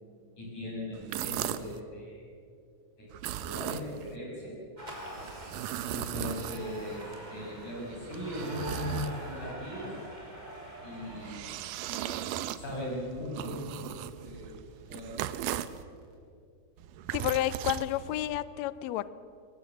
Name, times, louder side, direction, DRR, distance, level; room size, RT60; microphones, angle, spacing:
voice 1, 0.4-2.3 3.0-4.6 5.9-9.9 10.8-11.5 11.9-12.2 12.5-13.9 14.2-14.6 14.9-15.4, left 1 dB, 60° left, -3 dB, 8.2 m, -39 dB
sound 1, 0.9-1.8 3.1-4.2 5.2-7.0 7.7-9.5 10.9-15.8 16.8-18.4, right 12 dB, 80° right, 2.3 m, -38 dB
sound 2, 4.8-11.4, right 1 dB, 15° right, 2.9 m, -44 dB
sound 3, 4.9-16.2, right 2 dB, 40° right, 5.0 m, -60 dB
voice 2, 17.1-19.1, left 13 dB, 85° left, 16 dB, 1.5 m, -31 dB
22.5 x 19.5 x 7.3 m, 2.3 s
omnidirectional pair, 3.9 m